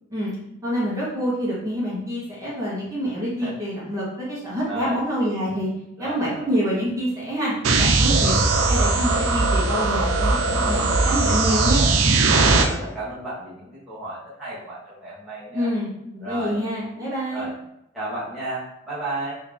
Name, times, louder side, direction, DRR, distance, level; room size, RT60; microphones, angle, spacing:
voice 1, 0.6-5.7 6.0-8.4 8.7-11.9 15.5-17.5, equal, 15° right, -8 dB, 1.3 m, -27 dB
voice 2, 4.6-5.0 6.0-6.5 9.2-9.5 10.5-11.6 12.1-15.7 16.2-16.5 17.3-17.5 17.9-19.3, right 1 dB, ahead, -11 dB, 1.2 m, -33 dB
sound 1, 7.6-12.6, right 3 dB, 85° right, 0.5 m, -19 dB
3.2 x 2.8 x 3.7 m, 0.82 s
head